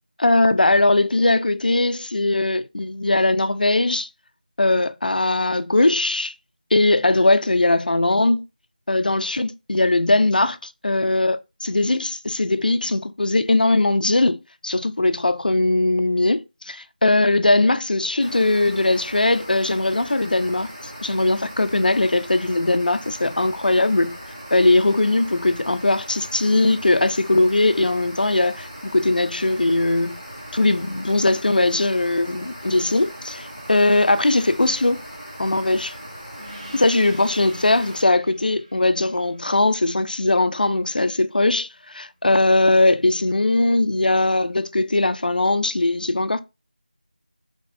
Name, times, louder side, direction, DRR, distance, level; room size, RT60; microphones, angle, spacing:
voice 1, 0.2-4.1 4.6-6.3 6.7-8.4 8.9-24.2 24.5-30.2 30.5-35.0 35.4-35.9 36.7-46.4, left 2 dB, 70° left, 0.4 m, -20 dB
sound 1, 18.2-38.0, equal, 20° right, 1.3 m, -39 dB
Gong, 36.4-41.4, right 1 dB, 50° right, 1.9 m, -47 dB
3.4 x 3.1 x 2.5 m
figure-of-eight pair, 175°, 5 cm